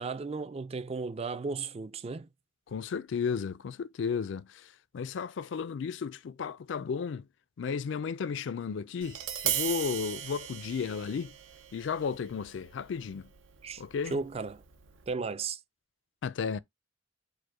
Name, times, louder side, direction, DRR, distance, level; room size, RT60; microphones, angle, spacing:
voice 1, 0.0-2.3 13.6-14.6 15.1-15.6, right 4 dB, 30° right, 0.4 m, -35 dB
voice 2, 2.7-4.7 4.9-7.3 7.6-11.3 11.7-13.3 13.8-14.2 16.2-16.6, left 6 dB, 70° left, 0.4 m, -34 dB
Tap, 9.0-15.1, right 10 dB, 85° right, 0.7 m, -38 dB
5.0 x 2.1 x 4.6 m
head